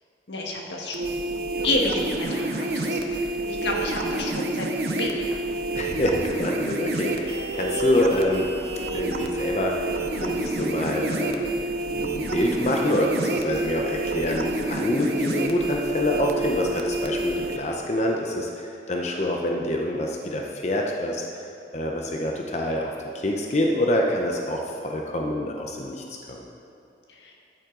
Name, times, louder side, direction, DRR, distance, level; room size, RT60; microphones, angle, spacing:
voice 1, 0.3-1.2 1.6-3.3 3.6-4.7 5.0-5.4 27.1-27.3, left 2 dB, 90° left, 0 dB, 1.5 m, -29 dB
sound 1, 0.9-17.6, right 2 dB, 60° right, 0.8 m, -28 dB
voice 2, 5.7-8.5 8.9-9.9 10.2-21.2 21.7-26.5, left 1 dB, 40° left, 0 dB, 0.7 m, -26 dB
13.0 x 7.6 x 3.8 m, 2.6 s
head